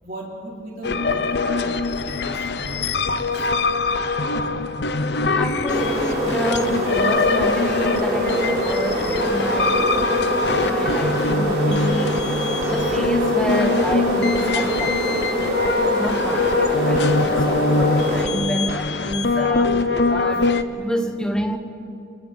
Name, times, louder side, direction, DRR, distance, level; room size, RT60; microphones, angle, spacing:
voice 1, 0.0-3.5, right 1 dB, 50° right, -4 dB, 5.0 m, -37 dB
sound 1, 0.8-20.6, left 3 dB, 70° left, 0.8 m, -23 dB
voice 2, 5.4-10.0 10.6-21.6, equal, 5° left, 5 dB, 1.2 m, -29 dB
sound 2, 5.7-18.2, right 1 dB, 65° right, 5.2 m, -24 dB
29.5 x 29.0 x 4.1 m, 2.6 s
head